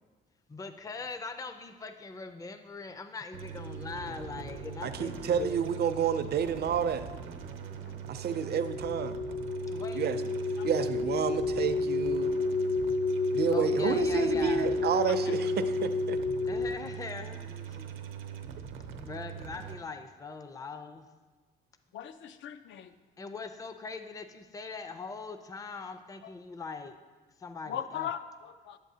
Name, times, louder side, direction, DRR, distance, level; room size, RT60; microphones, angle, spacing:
voice 1, 0.5-5.7 9.7-10.2 13.5-14.7 16.4-17.9 18.3-18.5 19.0-21.1 23.2-27.0 27.4-28.1, left 4 dB, 15° left, 8 dB, 0.4 m, -41 dB
sound 1, 3.3-19.8, right 8 dB, 85° right, 0.7 m, -42 dB
sound 2, 3.6-16.7, left 3 dB, 50° left, 0.8 m, -32 dB
voice 2, 4.8-7.1 8.1-9.2 9.9-10.2 10.6-12.3 13.3-16.2, right 8 dB, 55° right, 11 dB, 0.5 m, -30 dB
voice 3, 21.9-22.9 27.7-28.8, left 9 dB, 70° left, 11 dB, 0.5 m, -39 dB
10.5 x 7.1 x 2.8 m, 1.4 s
cardioid pair, 90°, 20 cm